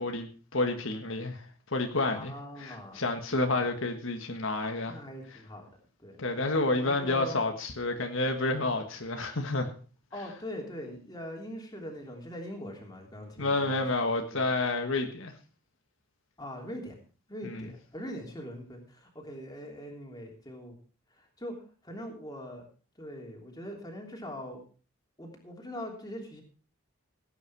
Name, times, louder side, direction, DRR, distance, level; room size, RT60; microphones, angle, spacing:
voice 1, 0.0-1.4 1.7-2.3 2.6-4.9 6.2-9.7 13.4-15.3 17.4-17.7, left 2 dB, 70° left, 5 dB, 1.6 m, -29 dB
voice 2, 2.1-3.0 3.3-3.7 4.9-5.7 6.0-6.3 6.7-7.5 10.1-13.8 14.3-14.4 16.4-17.0 17.3-20.8 21.1-21.6 21.8-22.7 23.0-24.6 25.2-26.4, equal, 20° left, 1 dB, 3.2 m, -42 dB
17.0 x 9.0 x 4.8 m, 0.39 s
head